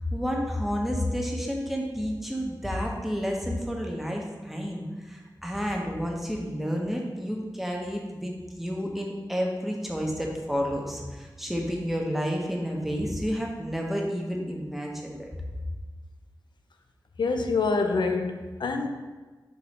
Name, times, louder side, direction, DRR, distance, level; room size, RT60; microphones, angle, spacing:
voice 1, 0.1-15.2, equal, 5° right, -1 dB, 1.1 m, -30 dB
voice 2, 17.2-18.9, left 4 dB, 85° left, 5 dB, 0.6 m, -26 dB
6.2 x 3.8 x 4.2 m, 1.3 s
wide cardioid pair, 80°, 8 cm